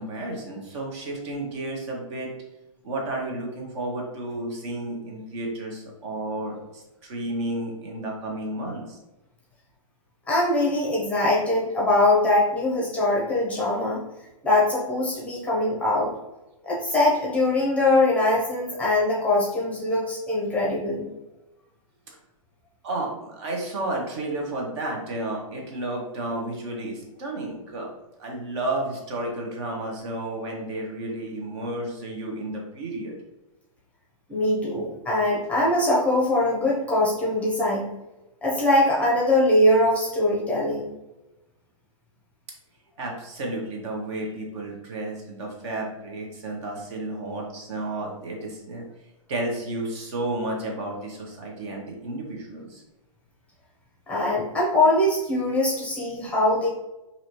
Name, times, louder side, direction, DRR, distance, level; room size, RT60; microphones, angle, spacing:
voice 1, 0.0-2.3 2.8-9.0 22.1-22.2 22.8-27.9 28.2-33.1 43.0-48.8 49.3-52.8, right 2 dB, 50° right, 0 dB, 1.2 m, -32 dB
voice 2, 10.3-14.0 14.4-16.1 16.6-21.1 34.3-37.8 38.4-40.9 54.1-56.7, left 1 dB, 5° left, -4 dB, 0.7 m, -22 dB
3.9 x 2.8 x 3.0 m, 1.0 s
hypercardioid pair, 140°, 18 cm